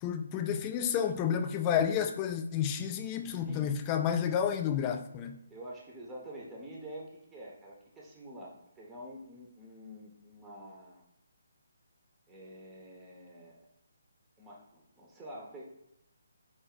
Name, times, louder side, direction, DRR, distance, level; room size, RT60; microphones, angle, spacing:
voice 1, 0.0-5.4, left 8 dB, 20° left, 6 dB, 0.3 m, -30 dB
voice 2, 5.5-11.0 12.3-13.7 14.4-15.6, right 1 dB, 10° right, -4 dB, 0.7 m, -47 dB
4.3 x 2.5 x 3.7 m, 0.83 s
hypercardioid pair, 155°, 0 cm